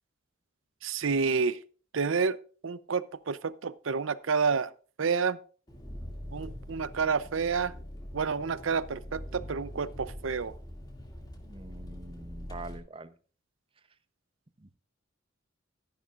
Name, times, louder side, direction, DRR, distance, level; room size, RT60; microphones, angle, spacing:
voice 1, 0.8-1.6 1.9-2.4 2.6-4.7 5.0-5.4 6.3-7.7 8.1-10.5, right 5 dB, 90° right, 0.6 m, -29 dB
Engine, 5.7-12.8, equal, 20° left, 2.4 m, -43 dB
voice 2, 11.4-13.1 14.6-14.8, right 2 dB, 30° right, 0.8 m, -44 dB
14.0 x 10.5 x 2.5 m
head